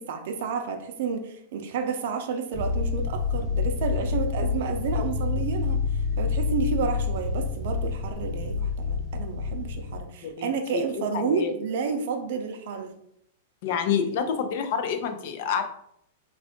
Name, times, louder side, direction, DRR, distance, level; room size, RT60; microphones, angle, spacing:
voice 1, 0.0-5.8 6.2-13.0, right 5 dB, 55° right, 6 dB, 0.6 m, -30 dB
sound 1, 2.5-10.0, left 5 dB, 10° left, 0.7 m, -28 dB
voice 2, 10.2-11.5 13.6-15.6, left 7 dB, 45° left, 7 dB, 0.5 m, -28 dB
3.6 x 2.5 x 3.5 m, 0.73 s
supercardioid pair, 165°, 0 cm